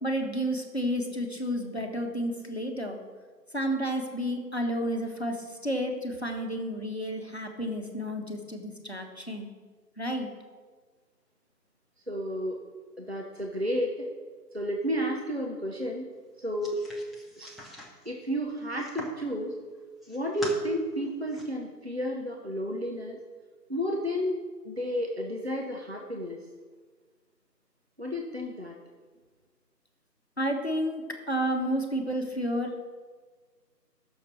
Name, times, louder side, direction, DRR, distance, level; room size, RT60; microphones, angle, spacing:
voice 1, 0.0-3.0 3.5-9.5 10.0-10.3 30.4-32.7, equal, 40° left, 2 dB, 1.2 m, -31 dB
voice 2, 12.1-12.6 13.0-14.1 14.5-16.1 16.4-16.8 17.4-17.6 18.0-19.5 20.1-23.2 23.7-26.4 28.0-28.8, equal, 40° right, 0 dB, 0.8 m, -31 dB
sound 1, 16.6-19.2 19.7-20.6 21.0-21.4, left 1 dB, ahead, 0.8 m, -44 dB
9.6 x 6.6 x 6.0 m, 1.5 s
figure-of-eight pair, 180°, 50 cm